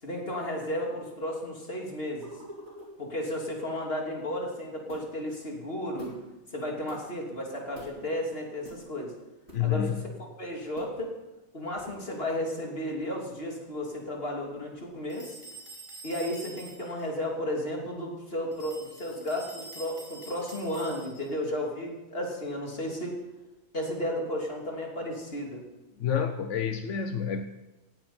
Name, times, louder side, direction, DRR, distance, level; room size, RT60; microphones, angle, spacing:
voice 1, 0.0-2.3 3.0-6.1 6.5-9.1 9.6-11.1 11.5-15.4 16.0-23.2 23.7-25.6, left 1 dB, 55° left, 0 dB, 3.5 m, -33 dB
sound 1, 2.2-2.9 4.9-5.2 6.0-6.2 6.9-7.0 7.8-8.1 8.6-8.8 9.5-9.8 10.8-11.1 11.8-12.0, right 1 dB, 65° right, 5.0 m, -46 dB
voice 2, 9.5-10.0 26.0-27.5, left 8 dB, 90° left, 7 dB, 1.2 m, -28 dB
sound 2, 15.1-17.1 18.5-21.4, right 2 dB, 25° right, 5.0 m, -47 dB
18.0 x 16.5 x 4.4 m, 1.1 s
omnidirectional pair, 1.2 m